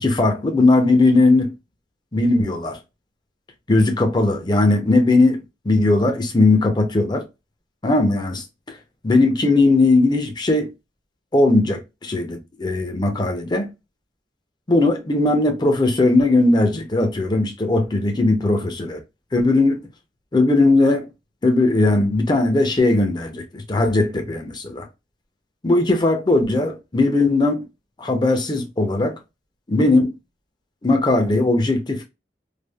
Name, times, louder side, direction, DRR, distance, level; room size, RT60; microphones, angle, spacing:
voice 1, 0.0-1.5 2.1-2.8 3.7-5.4 5.7-7.2 7.8-8.8 9.0-10.7 11.3-13.7 14.7-19.0 19.3-19.8 20.3-21.1 21.4-24.9 25.6-27.6 28.0-29.1 29.7-30.1 30.8-32.1, left 2 dB, 25° left, 0.5 m, -18 dB
3.3 x 2.3 x 2.2 m
head